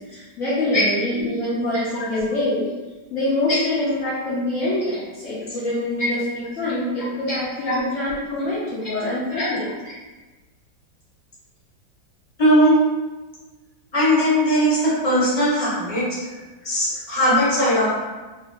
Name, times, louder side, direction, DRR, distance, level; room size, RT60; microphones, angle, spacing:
voice 1, 0.1-2.7 3.1-9.7, left 1 dB, 80° left, -8 dB, 0.6 m, -25 dB
voice 2, 12.4-12.7 13.9-16.4 16.6-17.9, equal, 30° left, -9 dB, 0.7 m, -19 dB
2.9 x 2.5 x 2.4 m, 1.2 s
omnidirectional pair, 2.0 m